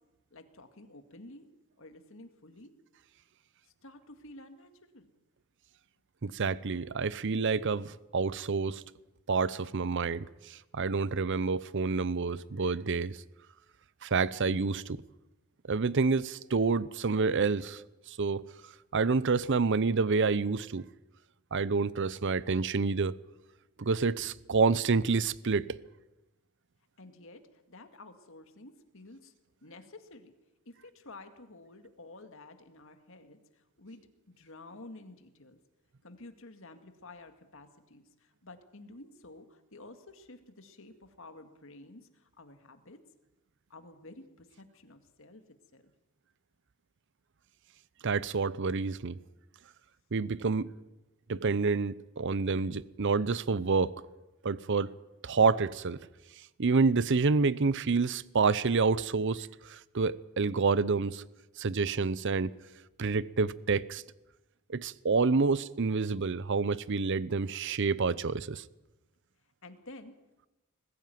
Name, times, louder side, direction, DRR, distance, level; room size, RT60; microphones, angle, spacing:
voice 1, 0.3-1.5 1.8-2.7 3.7-5.1 27.0-29.3 29.6-30.3 30.7-35.6 36.0-43.0 43.7-45.5 45.7-45.9 69.6-70.1, left 2 dB, 65° left, 2.1 m, -51 dB
voice 2, 6.2-8.8 9.3-13.2 14.0-15.0 15.7-18.4 18.9-20.9 21.5-23.1 23.8-25.8 48.0-49.2 50.1-50.7 51.3-54.0 54.4-54.9 55.2-56.0 56.6-61.2 61.6-62.5 63.0-64.0 64.7-68.6, right 4 dB, 55° right, 0.6 m, -28 dB
21.0 x 15.5 x 9.4 m
head